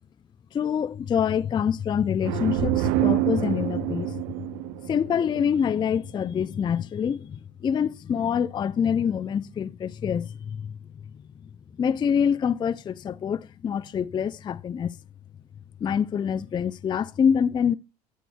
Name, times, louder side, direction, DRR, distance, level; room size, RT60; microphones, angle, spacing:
voice 1, 0.5-4.2 4.9-10.8 11.4-11.5 11.8-15.0 15.8-17.7, left 7 dB, 20° left, 0.4 m, -26 dB
sound 1, 2.2-5.9, right 17 dB, 65° right, 0.4 m, -27 dB
9.2 x 9.1 x 2.2 m
hypercardioid pair, 65°, 21 cm